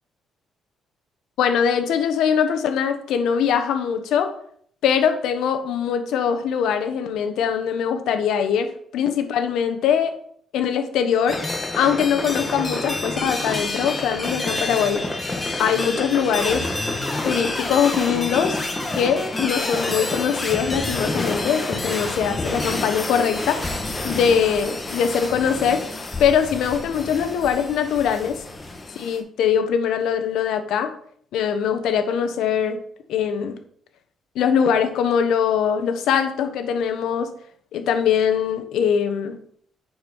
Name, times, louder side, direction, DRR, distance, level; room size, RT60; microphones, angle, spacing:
voice 1, 1.4-4.3 4.8-10.1 10.5-11.4 11.8-15.0 15.6-16.6 17.2-18.6 18.9-23.7 24.0-25.8 26.2-28.4 28.9-30.9 31.3-32.8 33.1-33.6 34.3-37.3 37.7-39.4, left 7 dB, 80° left, 8 dB, 1.1 m, -22 dB
sound 1, 11.3-29.2, left 2 dB, 25° left, 1.9 m, -28 dB
8.8 x 4.9 x 5.5 m, 0.62 s
cardioid pair, 90°, 0 cm